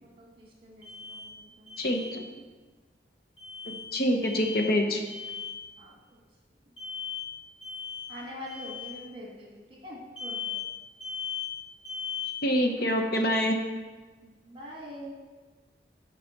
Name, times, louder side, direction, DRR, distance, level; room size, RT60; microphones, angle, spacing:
voice 1, 0.0-1.8 5.8-6.2 8.1-10.6 14.2-15.2, equal, 30° right, -3 dB, 2.1 m, -44 dB
Alarm, 0.8-1.3 1.7-2.1 3.4-3.8 4.2-4.7 5.0-5.5 6.8-7.3 7.6-8.1 8.4-8.9 10.2-10.6 11.0-11.5 11.8-12.3, left 7 dB, 30° left, 2.8 m, -37 dB
voice 2, 1.8-2.2 3.7-5.0 12.4-13.6, equal, 55° left, 4 dB, 0.8 m, -26 dB
7.1 x 4.8 x 6.5 m, 1.3 s
head